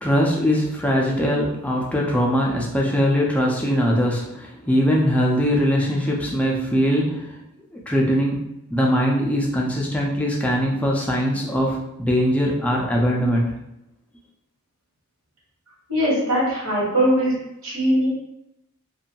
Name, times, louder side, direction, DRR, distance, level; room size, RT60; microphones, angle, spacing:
voice 1, 0.0-7.4 7.7-8.4 8.7-13.5, equal, 5° left, -2 dB, 0.3 m, -21 dB
voice 2, 15.9-17.3 17.6-18.1, equal, 70° right, -5 dB, 1.2 m, -20 dB
2.6 x 2.2 x 2.7 m, 0.86 s
head